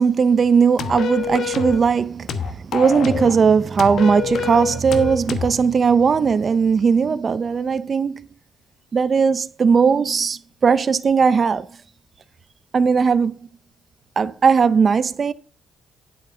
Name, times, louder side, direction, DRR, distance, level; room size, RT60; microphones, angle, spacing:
voice 1, 0.0-8.3 8.9-11.7 12.7-13.4 14.2-15.3, right 5 dB, 40° right, 0.6 m, -18 dB
sound 1, 0.8-1.8 2.3-3.4 3.8-5.6, left 6 dB, 65° left, 1.2 m, -26 dB
9.6 x 7.6 x 3.9 m
cardioid pair, 90°, 0 cm